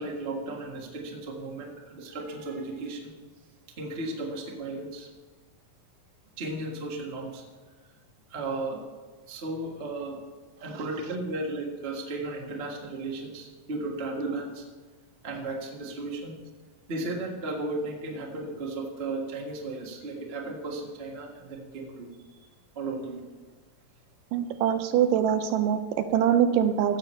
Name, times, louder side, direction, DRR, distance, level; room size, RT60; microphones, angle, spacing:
voice 1, 0.0-3.1 3.8-5.1 6.4-7.4 8.3-8.8 9.3-10.2 10.6-14.6 15.2-16.3 16.9-22.5 22.7-23.2, right 2 dB, 55° right, -1 dB, 0.6 m, -35 dB
voice 2, 24.3-27.0, right 9 dB, 80° right, 9 dB, 2.0 m, -24 dB
16.0 x 6.8 x 4.4 m, 1.4 s
omnidirectional pair, 4.0 m